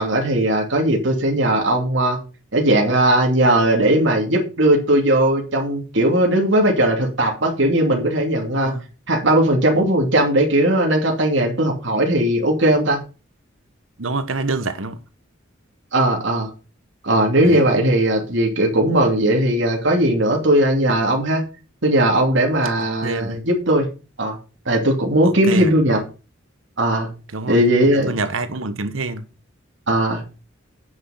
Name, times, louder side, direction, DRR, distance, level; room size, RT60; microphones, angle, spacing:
voice 1, 0.0-2.2 2.5-8.7 9.1-13.0 15.9-16.5 17.0-21.4 21.8-23.9 24.2-24.4 24.7-26.0 26.8-27.1 27.5-28.1 29.9-30.2, right 1 dB, 65° right, 2.6 m, -18 dB
voice 2, 14.0-15.0 17.4-17.7 23.0-23.4 25.2-25.7 27.3-27.6 27.9-29.3, right 3 dB, 90° right, 1.2 m, -26 dB
9.3 x 6.4 x 5.6 m
head